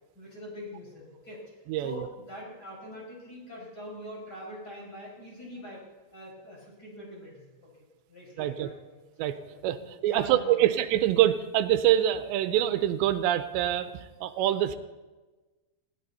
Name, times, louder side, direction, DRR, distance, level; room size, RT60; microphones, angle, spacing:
voice 1, 0.1-1.4 1.8-5.8 6.1-7.7 8.1-8.8 9.5-10.7, left 1 dB, 20° left, -3 dB, 6.0 m, -43 dB
voice 2, 1.7-2.1 8.4-8.7 9.2-9.4 9.6-14.8, right 12 dB, 90° right, 11 dB, 3.0 m, -25 dB
20.0 x 16.5 x 4.2 m, 1.2 s
omnidirectional pair, 5.0 m